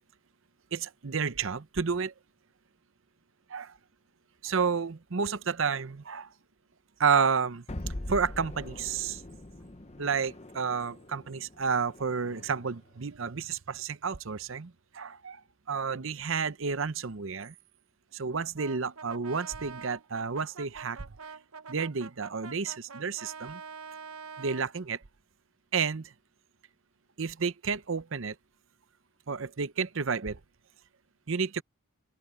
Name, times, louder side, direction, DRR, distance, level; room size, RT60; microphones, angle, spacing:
voice 1, 0.7-2.1 3.5-3.7 4.4-6.3 7.0-7.6 8.1-9.2 10.0-15.4 15.7-17.5 18.1-21.0 21.7-23.6 24.4-25.0 25.7-26.1 27.2-28.4 29.3-30.4 31.3-31.6, right 5 dB, 60° right, 0.7 m, -31 dB
sound 1, 7.7-12.8, left 1 dB, 30° left, 0.9 m, -42 dB
Brass instrument, 18.6-24.7, right 5 dB, 75° right, 1.1 m, -45 dB
open air
head